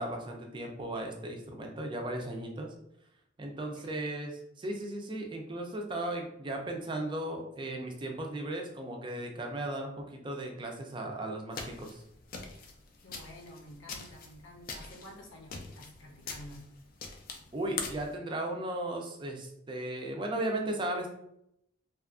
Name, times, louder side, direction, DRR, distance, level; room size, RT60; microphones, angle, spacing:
voice 1, 0.0-2.7 3.4-4.3 4.6-12.0 17.5-21.1, right 1 dB, 25° right, 2 dB, 0.4 m, -36 dB
voice 2, 3.7-4.3 13.0-16.6, left 1 dB, 75° left, -1 dB, 0.7 m, -50 dB
sound 1, 11.5-18.1, left 4 dB, 50° left, 0.4 m, -43 dB
2.6 x 2.3 x 2.4 m, 0.77 s
head